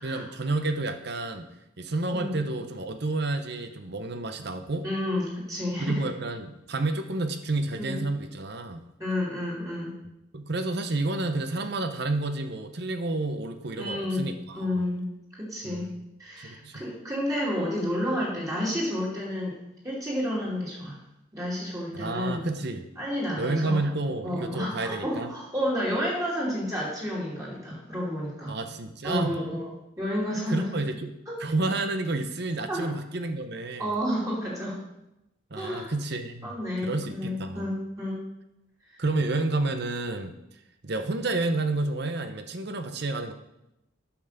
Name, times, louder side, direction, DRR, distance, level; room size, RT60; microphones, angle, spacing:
voice 1, 0.0-1.5 1.8-4.9 5.8-8.8 10.3-14.9 15.6-16.0 16.4-16.8 21.9-22.9 23.4-25.3 28.5-29.4 30.5-31.1 31.4-33.9 35.5-36.5 36.8-37.7 39.0-40.3 40.8-43.3, right 2 dB, 55° right, 8 dB, 0.8 m, -30 dB
voice 2, 4.8-6.0 7.8-8.0 9.0-9.9 13.8-15.1 15.3-15.9 16.2-19.6 19.8-21.0 21.3-22.4 23.0-23.9 24.2-28.6 29.0-30.7 31.3-31.4 32.7-33.0 33.8-34.8 35.6-35.9 36.4-38.2 38.9-39.0, left 1 dB, 15° right, -6 dB, 2.8 m, -30 dB
8.6 x 5.7 x 6.7 m, 0.89 s
head